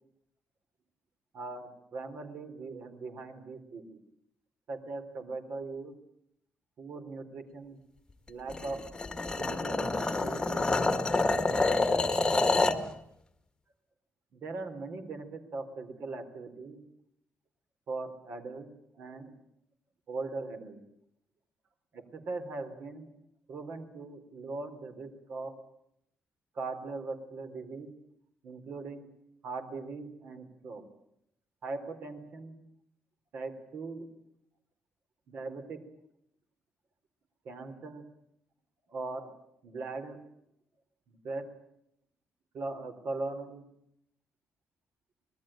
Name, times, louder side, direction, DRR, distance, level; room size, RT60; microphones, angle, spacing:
voice 1, 1.3-3.8 4.7-5.9 6.8-7.8 8.3-8.8 9.4-12.4 14.3-16.8 17.9-18.7 18.9-19.3 20.1-20.8 21.9-23.1 23.5-25.5 26.6-27.9 28.4-29.1 29.4-30.8 31.6-32.6 33.3-34.1 35.3-35.8 37.4-38.0 38.9-39.3 39.6-40.2 41.1-41.4 42.5-43.7, right 3 dB, 50° right, 7 dB, 3.9 m, -40 dB
sound 1, 8.5-12.9, left 3 dB, 15° left, 1.7 m, -27 dB
26.0 x 20.5 x 9.0 m, 0.75 s
cardioid pair, 175°, 5 cm